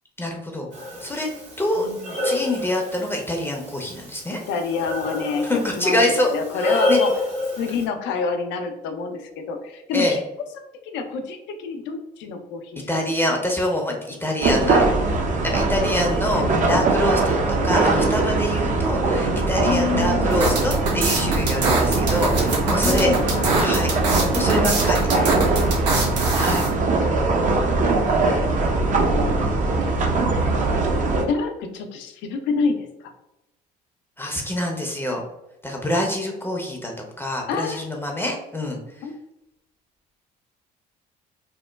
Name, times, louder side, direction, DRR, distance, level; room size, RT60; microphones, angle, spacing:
voice 1, 0.2-0.7 1.0-1.3 1.6-1.9 2.2-4.4 5.4-7.0 9.9-10.2 12.9-14.9 15.4-23.1 23.6-25.1 26.4-26.6 29.4-29.8 34.2-35.2 35.6-39.1, left 1 dB, 10° left, 1 dB, 0.6 m, -25 dB
Breathing, 0.7-7.9, left 1 dB, 60° right, 1.3 m, -28 dB
voice 2, 1.8-2.1 4.5-7.1 7.6-10.2 10.9-12.9 16.4-16.7 19.6-20.4 22.8-23.6 26.3-26.6 27.0-27.2 28.1-29.4 31.3-33.1 37.5-37.8 39.0-39.1, left 5 dB, 60° left, 6 dB, 0.5 m, -28 dB
sound 1, 14.4-31.2, right 3 dB, 40° right, 0.5 m, -21 dB
sound 2, 20.3-26.7, right 3 dB, 90° right, 0.5 m, -24 dB
2.9 x 2.1 x 2.2 m, 0.91 s
hypercardioid pair, 55°, 21 cm